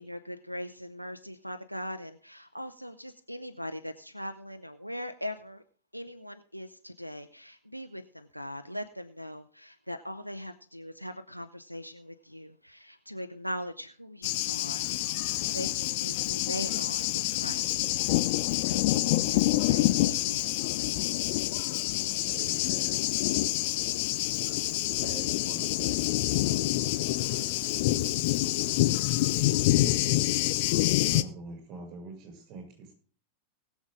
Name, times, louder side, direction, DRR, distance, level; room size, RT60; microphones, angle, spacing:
voice 1, 0.0-5.6 5.9-15.2 15.5-17.8 18.7-20.6, equal, 90° right, 11 dB, 0.5 m, -40 dB
Thunder, 14.2-31.2, left 16 dB, 50° left, 0.6 m, -27 dB
voice 2, 22.2-23.2 25.0-26.0 26.8-26.9, right 2 dB, 20° right, -1 dB, 2.3 m, -45 dB
voice 3, 29.5-30.3 31.0-32.9, right 3 dB, 40° right, 3 dB, 6.5 m, -43 dB
19.5 x 7.3 x 3.7 m, 0.40 s
figure-of-eight pair, 90°, 0 cm